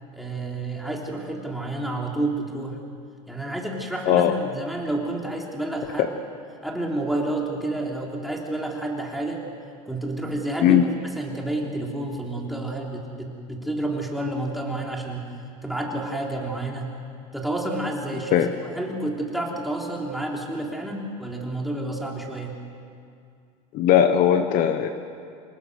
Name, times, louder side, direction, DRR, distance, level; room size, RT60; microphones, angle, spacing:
voice 1, 0.1-2.8 3.3-6.1 6.6-9.4 9.9-10.8 11.1-15.3 15.6-16.9 17.3-22.6, right 1 dB, ahead, -2 dB, 3.4 m, -30 dB
voice 2, 23.7-24.9, left 10 dB, 55° left, 9 dB, 1.2 m, -18 dB
27.0 x 19.5 x 6.4 m, 2.3 s
supercardioid pair, 125°, 17 cm